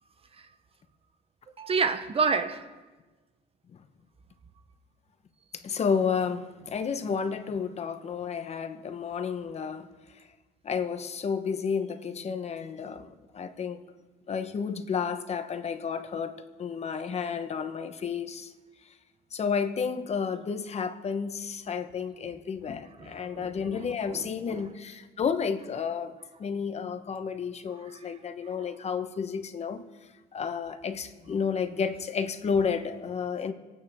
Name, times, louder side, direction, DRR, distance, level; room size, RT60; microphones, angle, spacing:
voice 1, 1.6-2.7 23.0-24.7 27.9-28.1, right 5 dB, 35° right, 0.9 m, -30 dB
voice 2, 5.6-9.9 10.6-13.8 14.3-16.3 16.6-18.5 19.3-26.1 26.4-29.9 30.3-33.5, left 6 dB, 40° left, 1.0 m, -31 dB
28.0 x 9.4 x 3.6 m
cardioid pair, 110°, 17 cm